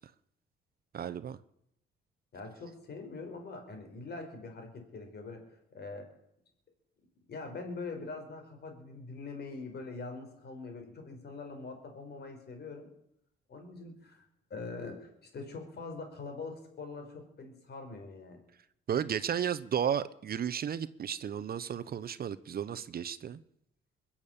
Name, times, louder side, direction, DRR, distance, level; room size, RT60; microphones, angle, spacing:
voice 1, 0.9-1.4 18.9-23.4, right 8 dB, 50° right, 0.8 m, -33 dB
voice 2, 2.3-5.5 5.7-6.1 7.3-12.9 13.5-14.2 14.5-18.4, left 3 dB, 55° left, 4.5 m, -43 dB
22.0 x 7.4 x 8.6 m
cardioid pair, 90°, 20 cm